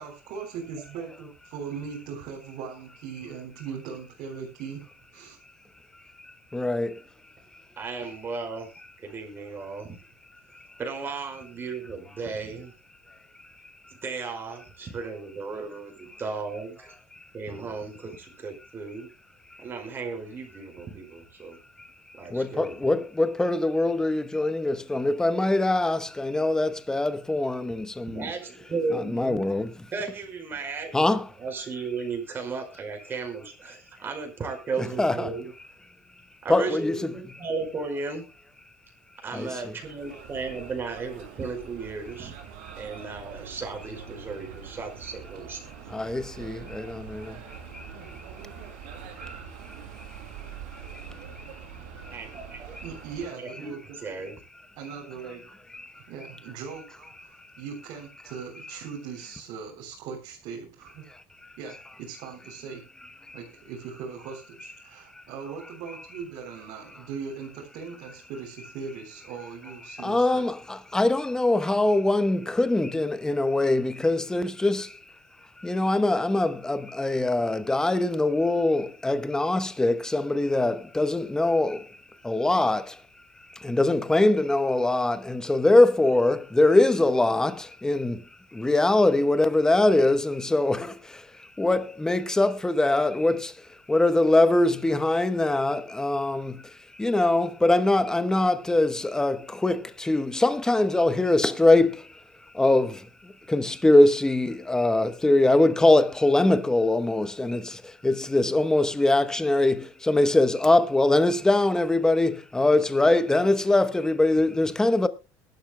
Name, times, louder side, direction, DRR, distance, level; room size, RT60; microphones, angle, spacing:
voice 1, 0.0-4.9 5.1-5.4 52.8-54.3 54.8-55.5 55.9-61.1 61.6-62.9 63.3-70.5, right 6 dB, 70° right, 3.6 m, -39 dB
voice 2, 6.2-7.0 10.5-10.7 19.5-19.6 21.8-21.9 22.3-28.3 28.9-29.7 30.9-31.3 35.0-35.3 36.5-37.1 39.3-39.7 45.9-48.2 49.2-49.8 50.7-51.4 52.0-52.1 55.7-55.9 61.4-61.5 63.3-63.4 65.2-65.3 69.9-75.0 75.6-81.9 82.2-83.0 83.5-88.2 88.5-93.5 93.9-96.6 96.9-102.1 102.5-115.1, left 2 dB, 10° left, 1.0 m, -23 dB
voice 3, 7.8-8.7 9.0-9.9 10.8-12.7 14.0-16.9 17.3-19.1 19.6-21.6 22.2-22.7 28.1-29.4 29.9-35.5 36.4-38.2 39.2-42.3 42.8-45.6 52.1-52.8 53.3-54.4, right 4 dB, 30° right, 5.2 m, -35 dB
sound 1, 39.6-53.3, right 8 dB, 85° right, 4.2 m, -44 dB
22.0 x 12.0 x 2.2 m
cardioid pair, 125°, 8 cm